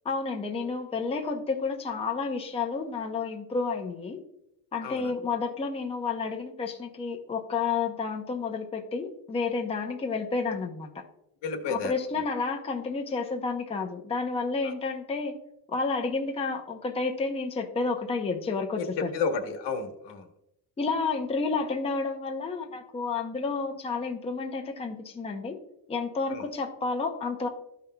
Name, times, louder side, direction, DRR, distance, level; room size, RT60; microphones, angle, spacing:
voice 1, 0.0-4.2 4.7-11.0 11.7-15.4 15.7-19.1 20.8-25.6 25.9-27.5, left 4 dB, 15° left, 2 dB, 0.6 m, -30 dB
voice 2, 4.8-5.1 11.4-11.9 14.6-14.7 18.8-20.3 26.3-26.4, left 5 dB, 80° left, 6 dB, 1.2 m, -31 dB
13.5 x 5.5 x 2.2 m, 0.82 s
cardioid pair, 165°, 41 cm